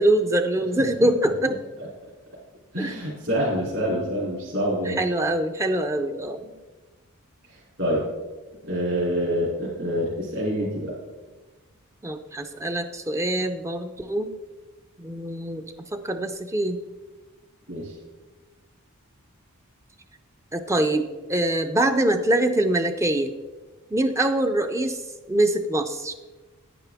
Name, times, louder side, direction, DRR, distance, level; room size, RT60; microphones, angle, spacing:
voice 1, 0.0-1.5 2.8-3.0 3.8-4.0 4.9-6.5 12.0-14.3 15.0-15.6 15.9-16.8 20.5-23.3 23.9-25.0 25.3-26.1, right 1 dB, 15° right, 7 dB, 0.4 m, -24 dB
voice 2, 2.7-5.0 7.5-8.1 8.6-10.9 17.7-18.0, equal, 60° right, -7 dB, 3.0 m, -26 dB
9.7 x 9.7 x 3.5 m, 1.2 s
head